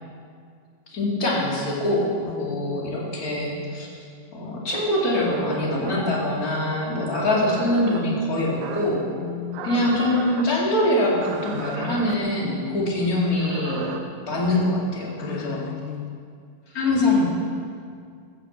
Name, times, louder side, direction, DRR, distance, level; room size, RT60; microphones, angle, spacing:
voice 1, 0.9-3.9 4.3-9.1 9.6-13.9 14.3-15.6 16.7-17.2, left 1 dB, 30° left, -4 dB, 2.6 m, -24 dB
voice 2, 2.3-3.0 9.2-9.9 15.2-16.2, left 12 dB, 90° left, 7 dB, 1.6 m, -36 dB
sound 1, 4.7-6.4 7.1-8.0 8.6-9.0 9.5-10.5 11.2-12.2 13.2-14.0, right 6 dB, 75° right, 2.5 m, -34 dB
14.5 x 8.5 x 7.3 m, 2.2 s
omnidirectional pair, 4.0 m